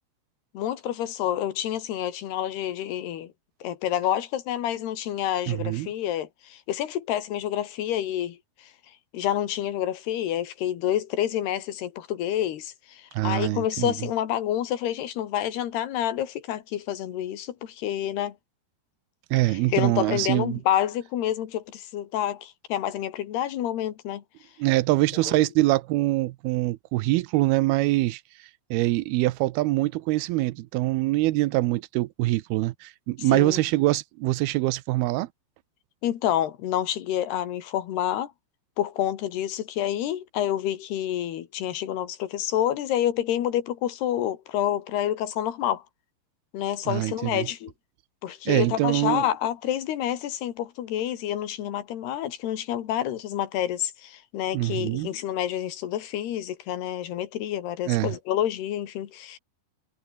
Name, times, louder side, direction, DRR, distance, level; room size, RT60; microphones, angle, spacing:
voice 1, 0.5-3.3 3.6-8.7 9.1-18.4 19.5-24.2 25.3-25.5 33.2-33.6 36.0-38.3 38.8-45.8 46.5-47.7 48.2-59.4, left 11 dB, 85° left, 4.0 m, -28 dB
voice 2, 5.5-5.9 13.1-13.9 19.3-20.6 24.6-28.2 28.7-35.3 46.9-47.5 48.5-49.2 54.5-55.1 57.9-58.2, right 18 dB, 85° right, 2.6 m, -24 dB
omnidirectional pair, 4.5 m